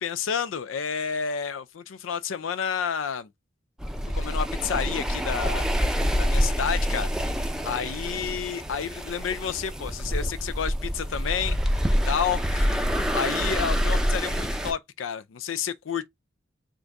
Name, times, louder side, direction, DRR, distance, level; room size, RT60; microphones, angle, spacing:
voice 1, 0.0-3.3 4.1-5.6 6.2-7.1 7.6-11.6 12.0-16.1, left 7 dB, 85° left, 0.5 m, -30 dB
sound 1, 3.8-14.7, equal, 5° right, 0.5 m, -26 dB
3.7 x 2.6 x 4.5 m
head